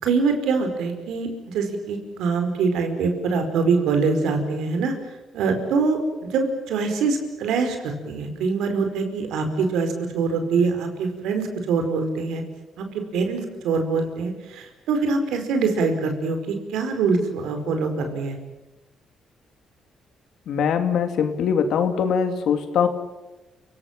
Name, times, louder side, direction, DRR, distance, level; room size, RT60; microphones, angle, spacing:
voice 1, 0.0-4.9 5.3-6.0 6.3-12.4 12.8-12.9 13.1-18.4, right 4 dB, 85° right, 6 dB, 4.9 m, -24 dB
voice 2, 20.5-22.9, left 7 dB, 75° left, 7 dB, 2.8 m, -22 dB
29.5 x 17.5 x 9.0 m, 1.1 s
cardioid pair, 90°, 0 cm